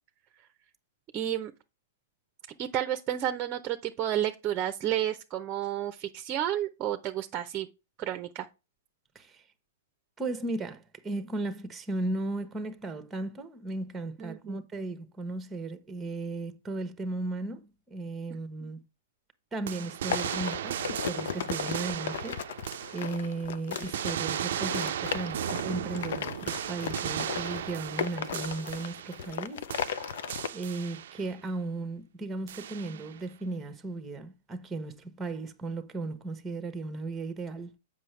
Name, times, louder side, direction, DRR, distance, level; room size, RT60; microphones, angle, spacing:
voice 1, 1.1-1.5 2.6-7.7 8.0-8.5 14.2-14.6 18.6-18.7, right 11 dB, 30° right, 0.7 m, -31 dB
voice 2, 10.2-18.8 19.5-22.4 22.9-29.7 30.5-37.7, right 2 dB, 10° right, 1.1 m, -36 dB
sound 1, 19.7-23.4 23.7-29.4 29.7-31.4 32.5-33.2, right 10 dB, 65° right, 0.4 m, -36 dB
sound 2, 20.1-30.5, left 8 dB, 65° left, 0.6 m, -36 dB
7.6 x 5.6 x 3.3 m
hypercardioid pair, 120°, 0 cm